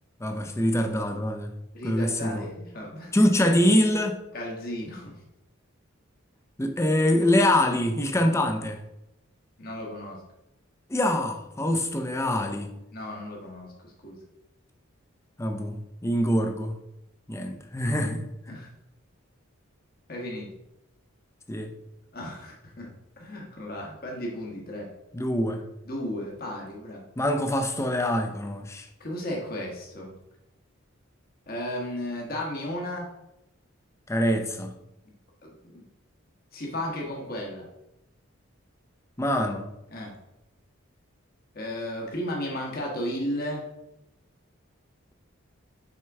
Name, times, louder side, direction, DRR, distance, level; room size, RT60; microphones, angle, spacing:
voice 1, 0.2-1.5 1.8-2.5 3.1-4.2 6.6-8.8 10.9-12.7 15.4-15.8 16.0-16.7 17.3-18.2 21.5-21.7 25.1-25.6 27.2-28.9 34.1-34.7 39.2-39.7, left 1 dB, 15° left, 5 dB, 0.5 m, -24 dB
voice 2, 1.7-3.1 4.3-5.1 9.6-10.2 12.9-14.1 18.5-18.7 20.1-20.5 22.1-22.9 23.2-24.9 25.9-27.0 29.0-30.1 31.5-33.1 35.6-35.8 36.5-37.6 39.9-40.1 41.5-43.6, left 1 dB, 45° left, -2 dB, 1.2 m, -34 dB
6.4 x 4.4 x 3.5 m, 0.88 s
head